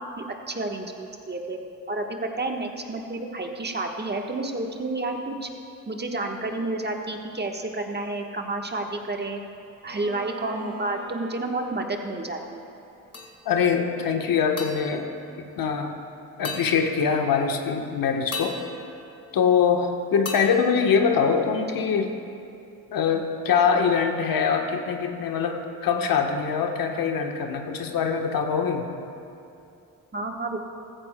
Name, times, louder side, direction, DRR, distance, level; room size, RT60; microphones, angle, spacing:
voice 1, 0.0-1.6 1.9-2.0 2.4-5.5 5.9-9.4 9.8-12.6 30.1-30.6, right 2 dB, 25° right, 3 dB, 1.3 m, -30 dB
Bowed string instrument, 9.8-13.8, right 7 dB, 85° right, 1.0 m, -45 dB
sound 1, 13.1-13.7 14.6-16.0 16.4-17.5 18.3-19.8 20.3-21.7, left 3 dB, 40° left, 1.9 m, -39 dB
voice 2, 13.4-15.1 15.6-16.0 16.4-18.6 19.3-22.1 22.9-28.9, left 6 dB, 60° left, 4 dB, 1.2 m, -23 dB
15.5 x 14.5 x 2.2 m, 2.6 s
supercardioid pair, 55°, 40 cm